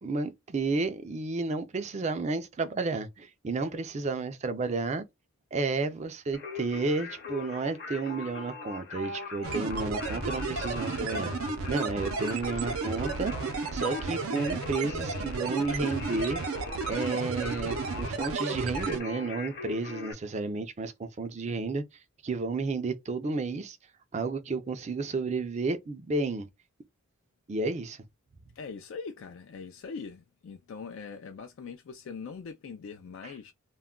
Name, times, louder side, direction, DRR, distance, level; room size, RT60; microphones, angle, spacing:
voice 1, 0.0-5.0 5.5-11.3 11.7-13.3 13.7-16.4 16.9-21.8 22.2-23.8 24.1-26.5 27.5-28.0 33.2-33.3, right 3 dB, 35° right, 0.4 m, -32 dB
Singing, 6.3-20.1, left 4 dB, 45° left, 0.8 m, -41 dB
sound 1, 9.4-19.0, right 4 dB, 90° right, 0.6 m, -33 dB
voice 2, 28.6-33.5, left 5 dB, 65° left, 0.3 m, -42 dB
2.2 x 2.2 x 3.5 m
head